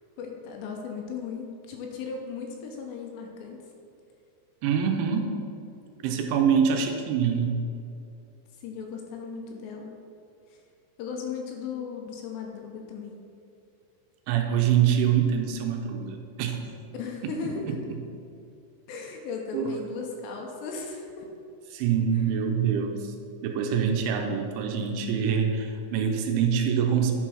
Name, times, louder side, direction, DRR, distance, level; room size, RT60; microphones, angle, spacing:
voice 1, 0.2-3.6 8.6-9.9 10.5-10.6 11.0-13.2 16.9-17.8 18.9-21.3, left 5 dB, 80° left, 1 dB, 2.8 m, -36 dB
voice 2, 4.6-5.4 6.0-7.6 14.3-16.6 17.2-17.3 19.5-19.8 21.7-23.1 23.4-27.1, right 7 dB, 85° right, 4 dB, 3.1 m, -25 dB
10.5 x 4.6 x 5.7 m, 2.6 s
omnidirectional pair, 5.6 m